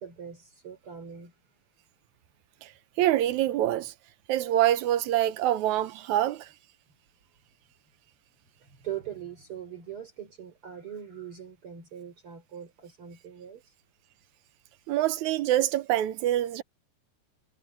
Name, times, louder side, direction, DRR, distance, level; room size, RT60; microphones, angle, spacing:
voice 1, 0.0-1.3 8.6-13.6, right 9 dB, 45° right, 4.3 m, -41 dB
voice 2, 3.0-3.9 4.3-6.5 14.9-16.6, right 13 dB, 80° right, 2.3 m, -25 dB
omnidirectional pair, 3.3 m